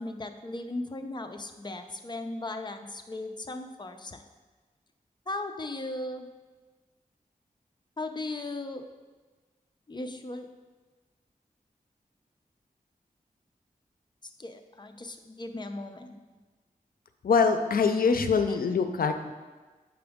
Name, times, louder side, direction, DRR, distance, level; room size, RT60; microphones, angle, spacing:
voice 1, 0.0-4.2 5.3-6.3 8.0-8.9 9.9-10.5 14.4-16.2 18.5-18.6, left 2 dB, 30° left, 6 dB, 0.5 m, -37 dB
voice 2, 17.2-19.3, left 5 dB, 75° left, 8 dB, 0.5 m, -24 dB
7.8 x 4.9 x 3.5 m, 1.3 s
wide cardioid pair, 95°, 15 cm